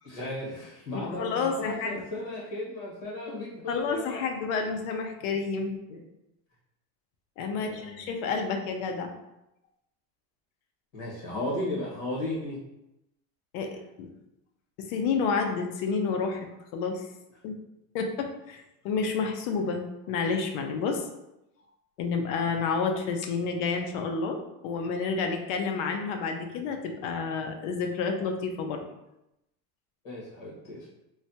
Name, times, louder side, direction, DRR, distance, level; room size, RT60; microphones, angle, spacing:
voice 1, 0.0-4.2 5.9-6.0 7.5-8.0 10.9-12.6 30.0-31.0, left 1 dB, 45° left, -5 dB, 1.5 m, -35 dB
voice 2, 0.9-2.0 3.7-5.7 7.4-9.1 13.5-14.1 14.8-17.1 17.4-17.6 17.9-21.0 22.0-24.4 24.6-28.8, left 5 dB, 65° left, 4 dB, 0.6 m, -30 dB
3.2 x 2.3 x 2.7 m, 0.89 s
cardioid pair, 180°, 43 cm